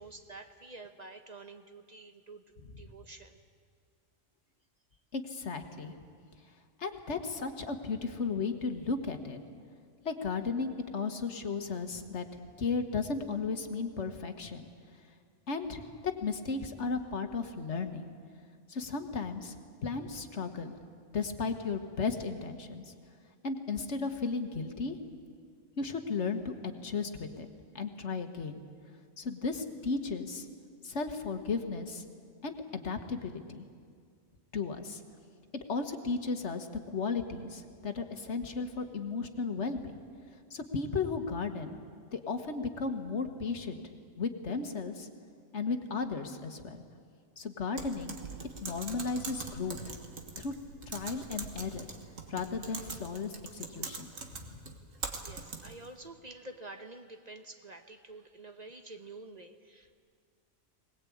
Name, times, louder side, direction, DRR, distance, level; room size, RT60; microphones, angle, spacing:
voice 1, 0.0-2.4 2.8-3.4 55.1-59.9, right 2 dB, 35° right, 6 dB, 1.0 m, -48 dB
voice 2, 5.1-6.0 6.8-9.4 10.0-12.3 12.6-14.7 15.5-15.8 16.2-18.1 18.7-20.8 21.1-22.8 23.4-24.9 25.8-27.5 27.7-28.6 29.2-30.5 30.8-32.0 32.4-33.6 34.5-35.0 35.5-39.9 40.5-41.8 42.1-43.8 44.2-45.1 45.5-46.8 47.4-48.2 48.6-49.9 50.4-50.5 50.9-51.9 52.3-54.1 54.4-54.5, left 4 dB, 60° left, 7 dB, 1.7 m, -35 dB
Typing, 47.8-55.9, right 4 dB, 85° right, 2.0 m, -43 dB
22.0 x 19.5 x 8.6 m, 2.1 s
omnidirectional pair, 1.3 m